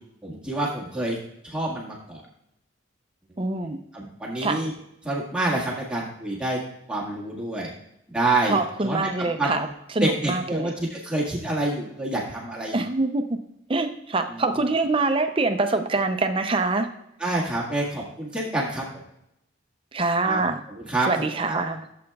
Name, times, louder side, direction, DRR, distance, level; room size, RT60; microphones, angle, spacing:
voice 1, 0.2-1.2 1.4-2.2 3.9-4.7 5.0-6.6 6.9-7.7 8.1-9.7 10.0-12.8 14.3-14.6 17.2-18.9 20.2-20.4 20.7-21.6, right 2 dB, 5° right, -5 dB, 1.6 m, -27 dB
voice 2, 3.4-3.8 4.4-4.6 8.5-9.7 10.0-10.7 12.7-13.4 13.7-16.9 19.9-20.6 21.1-21.8, right 3 dB, 25° right, 7 dB, 0.5 m, -24 dB
15.5 x 7.7 x 2.3 m, 0.81 s
head